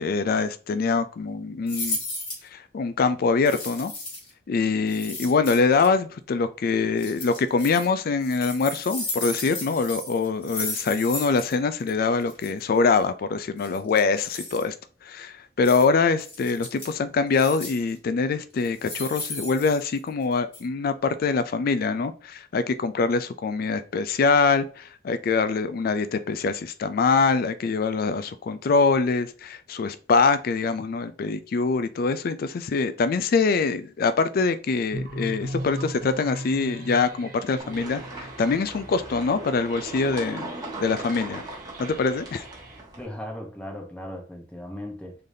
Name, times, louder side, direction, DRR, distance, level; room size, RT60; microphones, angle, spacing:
voice 1, 0.0-2.0 2.5-3.9 4.5-14.7 15.0-40.5 40.8-41.4 41.8-42.4, left 4 dB, 55° left, 0.3 m, -24 dB
sound 1, 1.7-2.5 3.5-4.3 4.9-5.9 7.0-7.9 8.2-11.5 11.8-11.9 12.2-12.5 13.6-14.6 15.6-15.8 16.2-16.9 17.3-17.9 18.6-20.2 20.5-20.6, left 2 dB, 30° left, 1.5 m, -35 dB
sound 2, 34.9-42.8, right 1 dB, 55° right, 0.8 m, -38 dB
sound 3, 37.6-43.0, right 2 dB, 20° right, 1.0 m, -38 dB
voice 2, 43.0-45.2, left 1 dB, 5° left, 0.9 m, -37 dB
3.8 x 3.3 x 2.6 m
head